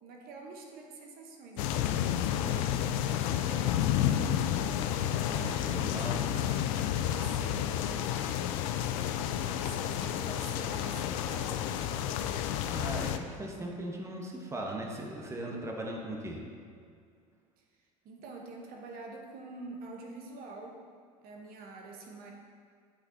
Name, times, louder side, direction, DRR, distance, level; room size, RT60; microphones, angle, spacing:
voice 1, 0.0-4.3 5.7-5.9 6.3-8.5 9.5-11.7 18.0-20.8 21.2-22.3, right 3 dB, 55° right, 1 dB, 1.0 m, -47 dB
sound 1, 1.6-13.2, left 10 dB, 70° left, 0.4 m, -30 dB
voice 2, 5.3-6.2 12.7-16.4, right 1 dB, 15° right, 0 dB, 1.0 m, -38 dB
8.6 x 5.7 x 2.7 m, 2.2 s
hypercardioid pair, 75°, 18 cm